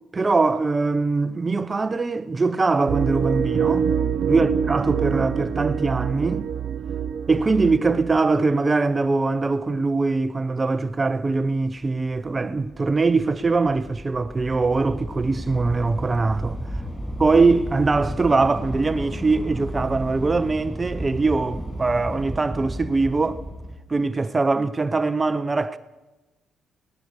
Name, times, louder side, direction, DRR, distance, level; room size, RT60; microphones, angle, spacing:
voice 1, 0.1-4.0 4.3-6.5 7.3-16.6 17.2-23.4 23.9-25.8, right 3 dB, 25° right, 0.8 m, -22 dB
sound 1, 2.9-8.2, right 7 dB, 65° right, 0.8 m, -25 dB
Train / Subway metro underground, 11.6-23.8, equal, 5° left, 6.7 m, -34 dB
22.0 x 19.0 x 6.6 m
cardioid pair, 90°, 0 cm